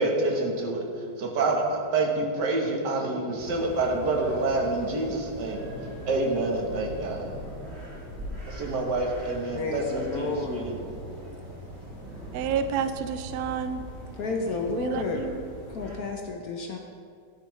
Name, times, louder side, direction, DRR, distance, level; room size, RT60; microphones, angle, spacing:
voice 1, 0.0-5.6 6.0-7.3 8.5-10.7, right 2 dB, 60° right, 1 dB, 1.7 m, -27 dB
sound 1, 3.4-16.0, right 1 dB, 30° right, 2.6 m, -41 dB
voice 2, 9.5-10.7 14.1-15.2 15.7-16.8, left 4 dB, 60° left, 2 dB, 1.0 m, -31 dB
voice 3, 12.3-13.8 14.8-15.4, right 7 dB, 75° right, 10 dB, 0.9 m, -29 dB
11.5 x 9.6 x 3.2 m, 2.2 s
omnidirectional pair, 2.2 m